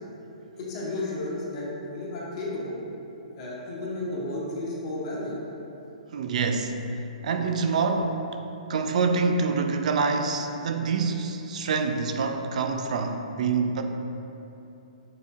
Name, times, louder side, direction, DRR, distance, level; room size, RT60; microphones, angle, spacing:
voice 1, 0.6-2.8 3.4-5.4, left 2 dB, 45° left, -5 dB, 1.1 m, -33 dB
voice 2, 6.1-6.8 7.2-8.2 8.7-13.8, right 4 dB, 65° right, 5 dB, 0.3 m, -26 dB
6.9 x 2.7 x 2.3 m, 2.9 s
hypercardioid pair, 140°, 4 cm